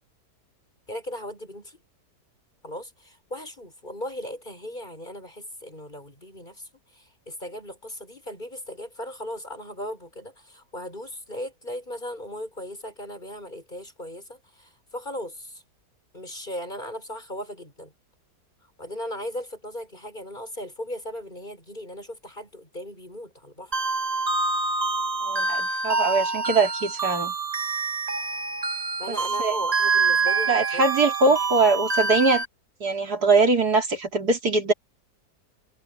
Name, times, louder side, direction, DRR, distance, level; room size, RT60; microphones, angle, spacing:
voice 1, 0.9-1.8 2.6-15.6 16.1-17.9 18.8-23.8 29.0-30.8, left 1 dB, 25° left, 7.9 m, -37 dB
sound 1, 23.7-32.4, right 4 dB, 25° right, 1.3 m, -26 dB
voice 2, 25.2-27.3 29.4-29.5 30.5-32.4 32.8-34.7, right 3 dB, 70° right, 3.8 m, -22 dB
omnidirectional pair, 1.8 m